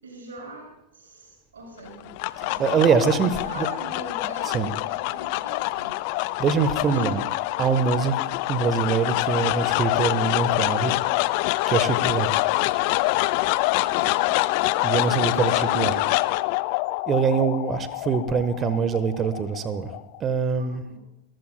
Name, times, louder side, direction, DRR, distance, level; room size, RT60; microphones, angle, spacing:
voice 1, 0.0-2.1 2.4-6.0 6.9-7.1 13.8-14.3 15.3-16.1 20.5-21.0, right 2 dB, 70° right, -1 dB, 6.6 m, -41 dB
sound 1, 1.9-20.2, left 20 dB, 45° left, 0.4 m, -25 dB
voice 2, 2.6-3.7 4.5-4.7 6.4-7.2 7.6-8.2 8.5-11.0 11.7-12.3 14.8-15.9 17.1-19.9 20.2-20.8, right 6 dB, 25° right, 12 dB, 1.2 m, -23 dB
27.5 x 14.5 x 2.2 m, 0.80 s
figure-of-eight pair, 90°, 0 cm